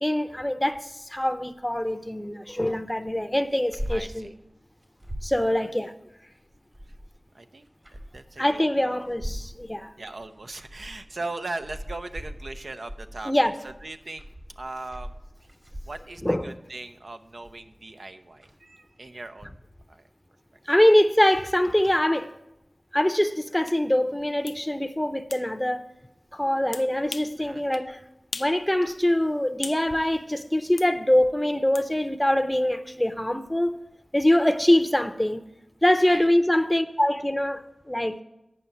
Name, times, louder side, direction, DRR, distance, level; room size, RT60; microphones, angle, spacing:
voice 1, 0.0-4.3 5.2-5.9 8.4-9.9 13.3-13.6 16.2-16.5 20.7-22.3 22.9-25.8 26.3-28.0 28.3-33.8 34.1-35.4 35.8-38.2, left 1 dB, 10° left, 0.6 m, -23 dB
sound 1, 3.5-4.1 4.4-4.5 4.8-5.4 6.5-7.2 7.7-8.3 9.0-9.5 10.3-11.0 11.4-16.2 17.4-17.8 18.4-18.5, equal, 40° right, 2.0 m, -38 dB
voice 2, 3.9-4.3 5.4-5.7 7.3-9.1 10.0-14.2 14.6-15.1 15.9-19.5 19.9-20.0 27.4-27.6 36.1-36.3, right 2 dB, 70° right, 0.5 m, -39 dB
sound 2, 23.7-23.8 24.5-24.6 25.3-25.5 26.7-27.4 27.7-27.9 28.3-28.6 28.9-29.9 30.8-30.9 31.7-31.9, left 3 dB, 70° left, 0.4 m, -38 dB
9.1 x 5.5 x 7.0 m
cardioid pair, 40°, 0 cm